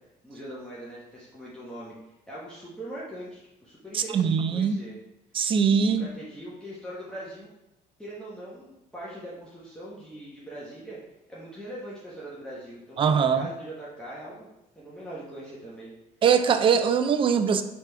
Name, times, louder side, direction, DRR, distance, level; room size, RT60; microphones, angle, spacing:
voice 1, 0.2-1.9 2.3-5.0 5.7-7.5 8.0-11.0 11.3-14.5 14.7-15.9, right 1 dB, 5° left, -8 dB, 1.1 m, -41 dB
voice 2, 3.9-4.8 5.3-6.1 13.0-13.5 16.2-17.6, right 7 dB, 30° right, 9 dB, 0.4 m, -22 dB
3.5 x 3.4 x 4.4 m, 0.90 s
cardioid pair, 110°, 17 cm